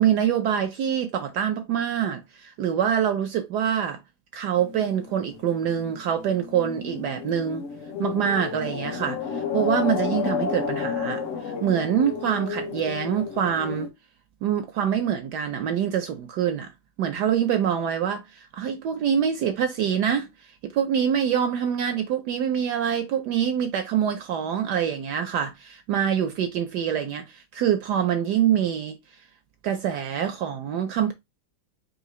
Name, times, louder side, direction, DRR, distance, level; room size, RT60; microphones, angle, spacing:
voice 1, 0.0-4.0 4.3-7.6 8.0-13.9 14.4-16.7 17.0-29.0 29.6-31.1, right 9 dB, 75° right, 0.9 m, -25 dB
sound 1, 4.6-13.9, left 6 dB, 70° left, 0.7 m, -31 dB
4.7 x 2.8 x 3.0 m
omnidirectional pair, 2.2 m